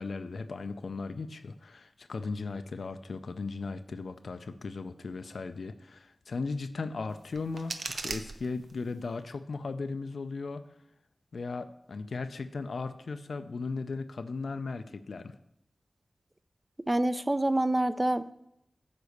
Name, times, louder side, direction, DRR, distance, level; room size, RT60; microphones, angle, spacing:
voice 1, 0.0-10.6 11.3-15.3, left 4 dB, 80° left, 10 dB, 0.5 m, -37 dB
sound 1, 7.1-9.1, right 3 dB, 80° right, 0.6 m, -40 dB
voice 2, 16.9-18.3, right 1 dB, 25° right, 12 dB, 0.5 m, -27 dB
9.5 x 4.1 x 6.6 m, 0.80 s
cardioid pair, 45°, 0 cm